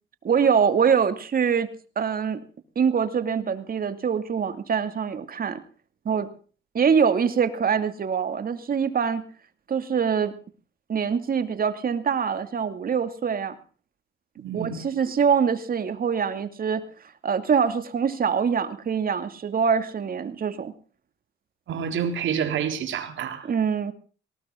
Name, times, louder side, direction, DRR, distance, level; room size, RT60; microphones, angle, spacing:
voice 1, 0.2-2.4 2.8-5.6 6.0-6.3 6.7-9.2 9.7-10.3 10.9-13.6 14.5-16.8 17.2-20.7 23.4-23.9, right 6 dB, 45° right, 10 dB, 2.5 m, -24 dB
voice 2, 14.4-14.8 21.7-23.5, right 7 dB, 75° right, 6 dB, 3.9 m, -28 dB
19.0 x 19.0 x 3.9 m, 0.40 s
cardioid pair, 90°, 20 cm